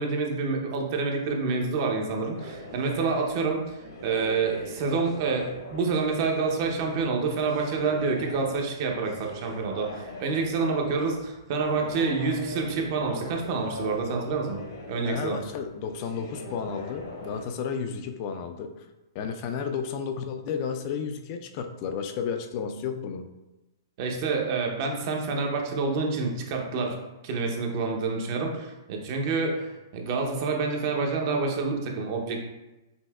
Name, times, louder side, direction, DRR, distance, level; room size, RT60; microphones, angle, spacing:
voice 1, 0.0-3.8 4.0-14.6 14.9-15.4 24.0-27.0 27.2-32.4, right 4 dB, 45° right, 2 dB, 0.7 m, -28 dB
sound 1, 2.3-17.4, left 1 dB, 70° left, 1.2 m, -42 dB
voice 2, 15.1-18.9 19.1-23.3, left 6 dB, 40° left, 6 dB, 0.4 m, -32 dB
5.3 x 2.7 x 2.3 m, 1.0 s
hypercardioid pair, 130°, 2 cm